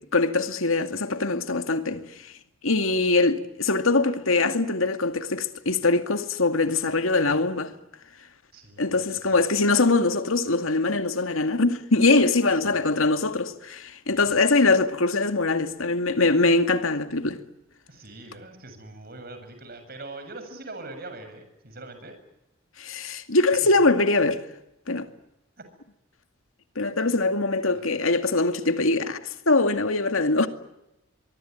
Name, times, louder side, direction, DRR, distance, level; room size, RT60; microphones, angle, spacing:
voice 1, 0.1-2.1 2.6-7.7 8.8-17.4 22.8-24.4 24.9-25.1 26.8-29.2 29.5-30.5, left 3 dB, 80° left, 2.3 m, -22 dB
voice 2, 8.5-9.5 12.5-13.0 14.2-14.4 17.9-22.2 23.6-23.9 27.7-28.1, right 2 dB, 45° right, 7.5 m, -43 dB
24.5 x 23.5 x 9.4 m
head